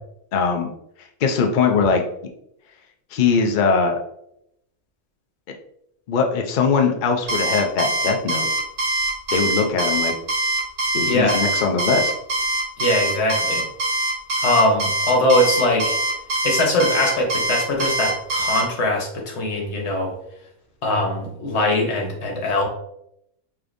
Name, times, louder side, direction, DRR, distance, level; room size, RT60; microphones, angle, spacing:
voice 1, 0.3-0.7 1.0-2.0 3.1-4.0 6.1-8.5 9.3-10.2 10.9-12.1, left 5 dB, 80° left, 3 dB, 0.4 m, -21 dB
Alarm, 7.3-18.6, right 1 dB, 80° right, 1.5 m, -23 dB
voice 2, 11.0-11.4 12.8-13.7 14.4-16.0 16.4-20.1 20.8-22.6, left 1 dB, 50° left, 0 dB, 1.2 m, -21 dB
4.9 x 3.3 x 2.6 m, 0.77 s
omnidirectional pair, 1.5 m